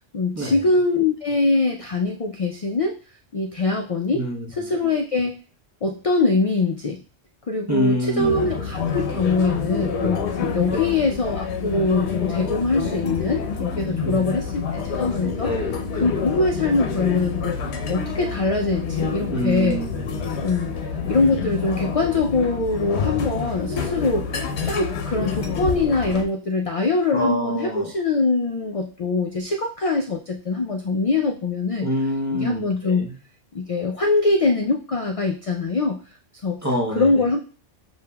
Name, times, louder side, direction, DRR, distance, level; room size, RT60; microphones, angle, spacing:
voice 1, 0.1-3.0 3.3-4.2 4.6-5.3 5.8-7.0 7.5-10.2 10.5-15.5 16.0-17.6 17.9-19.8 20.4-20.7 21.1-24.3 24.6-31.9 32.3-33.1 33.5-36.0 36.4-36.6 37.0-37.4, left 3 dB, 60° left, 3 dB, 0.3 m, -23 dB
voice 2, 4.1-4.7 7.7-8.6 10.7-11.0 14.0-14.3 15.4-15.7 19.3-20.0 20.8-21.1 27.1-27.9 31.8-33.1 36.6-37.2, equal, 20° right, -1 dB, 0.6 m, -26 dB
sound 1, 8.2-26.2, left 5 dB, 85° left, 0.9 m, -28 dB
7.0 x 2.6 x 2.2 m, 0.38 s
omnidirectional pair, 1.1 m